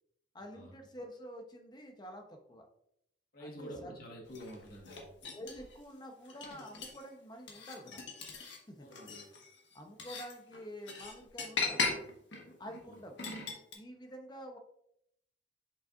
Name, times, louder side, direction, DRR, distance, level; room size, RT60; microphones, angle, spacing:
voice 1, 0.3-2.7 3.4-3.9 5.3-8.1 8.4-8.9 9.7-12.1 12.6-13.3 13.7-14.6, equal, 25° left, 4 dB, 0.8 m, -48 dB
voice 2, 3.3-5.1 8.8-9.3 12.8-13.0, equal, 55° left, 0 dB, 1.5 m, -48 dB
sound 1, 4.3-5.8 6.2-7.0 7.5-8.6 8.9-13.7, left 4 dB, 80° left, 1.4 m, -39 dB
6.9 x 5.6 x 2.5 m, 0.75 s
head